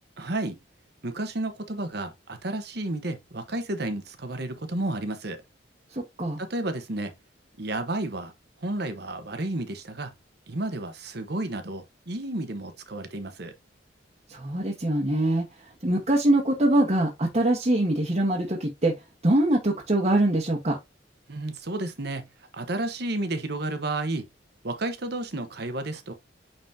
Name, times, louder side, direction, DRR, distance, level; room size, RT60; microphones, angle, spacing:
voice 1, 0.2-0.6 1.0-5.4 6.4-7.1 7.6-8.3 8.6-10.1 10.5-13.5 21.3-22.3 22.5-24.3 24.6-26.1, right 2 dB, 60° right, 1.2 m, -31 dB
voice 2, 5.9-6.4 14.3-15.4 15.8-18.9 19.2-20.8, right 1 dB, 40° right, 1.4 m, -23 dB
9.0 x 4.1 x 2.8 m
head